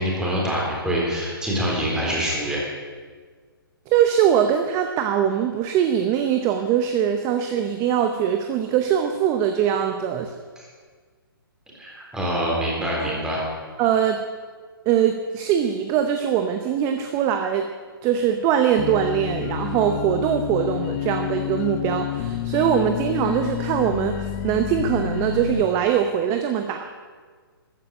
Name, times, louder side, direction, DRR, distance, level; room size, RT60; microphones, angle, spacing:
voice 1, 0.0-2.6 10.6-10.7 11.8-13.4, equal, 5° right, -3 dB, 3.8 m, -25 dB
voice 2, 3.9-10.3 13.0-13.1 13.8-14.2 14.9-17.7 18.0-26.9, right 9 dB, 25° right, 6 dB, 0.8 m, -22 dB
sound 1, 18.8-25.6, left 11 dB, 35° left, 0.8 m, -29 dB
14.0 x 9.6 x 7.5 m, 1.5 s
hypercardioid pair, 145°, 13 cm